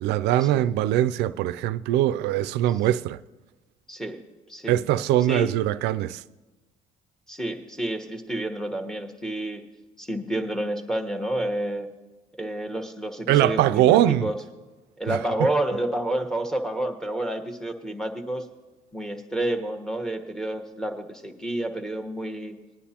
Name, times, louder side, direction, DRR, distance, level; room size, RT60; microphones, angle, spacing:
voice 1, 0.0-3.2 4.7-6.2 13.3-14.3 15.1-15.5, right 13 dB, 85° right, 0.4 m, -22 dB
voice 2, 7.3-9.6 10.0-11.9 12.4-14.4 15.0-18.4 18.9-22.6, right 1 dB, 5° left, 1.2 m, -29 dB
20.0 x 10.0 x 2.9 m
cardioid pair, 110°, 17 cm